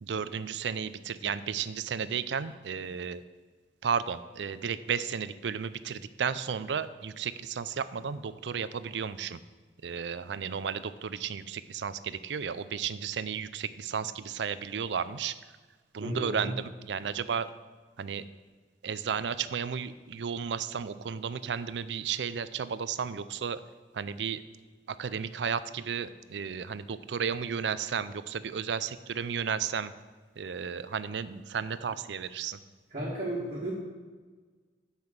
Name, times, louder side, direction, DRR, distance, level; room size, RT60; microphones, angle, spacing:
voice 1, 0.0-3.2 3.8-9.4 9.8-15.3 15.9-16.5 16.8-17.5 18.0-18.2 18.8-23.6 23.9-24.4 24.9-29.9 30.4-32.6, right 7 dB, 80° right, 15 dB, 0.4 m, -33 dB
voice 2, 16.0-16.5 32.9-33.7, right 1 dB, 45° right, -9 dB, 2.0 m, -33 dB
7.7 x 5.7 x 7.3 m, 1.4 s
head